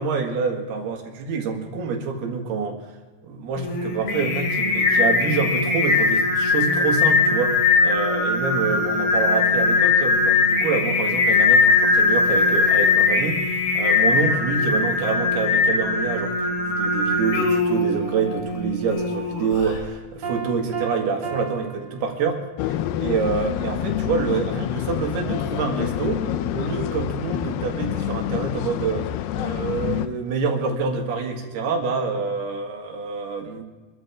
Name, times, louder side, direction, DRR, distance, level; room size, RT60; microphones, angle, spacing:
voice 1, 0.0-2.8 3.2-22.4 23.0-26.3 26.5-33.6, right 5 dB, 90° right, 2 dB, 3.9 m, -27 dB
Singing, 3.6-19.8, left 4 dB, 70° left, 4.0 m, -20 dB
Piano, 20.2-22.8, right 5 dB, 55° right, 1.2 m, -34 dB
sound 1, 22.6-30.1, left 11 dB, 85° left, 2.7 m, -27 dB
26.0 x 13.5 x 3.6 m, 1.3 s
omnidirectional pair, 4.5 m